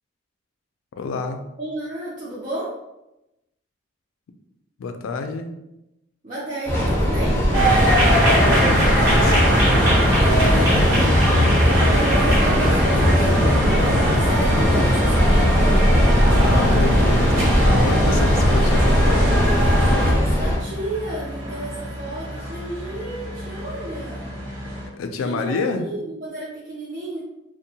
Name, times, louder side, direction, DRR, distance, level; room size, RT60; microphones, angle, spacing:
voice 1, 1.0-1.4 4.8-5.5 8.2-9.5 16.2-19.9 24.9-25.9, left 3 dB, 80° left, 7 dB, 0.3 m, -29 dB
voice 2, 1.6-2.7 6.2-7.4 10.2-11.3 11.7-15.9 19.5-24.3 25.2-27.2, right 1 dB, 40° right, -8 dB, 0.5 m, -32 dB
Train, 6.7-20.6, equal, 10° left, 0.5 m, -20 dB
sound 1, 7.5-20.1, equal, 65° right, 1.1 m, -19 dB
sound 2, 7.9-24.9, equal, 80° right, 1.0 m, -34 dB
2.7 x 2.1 x 2.7 m, 0.92 s
head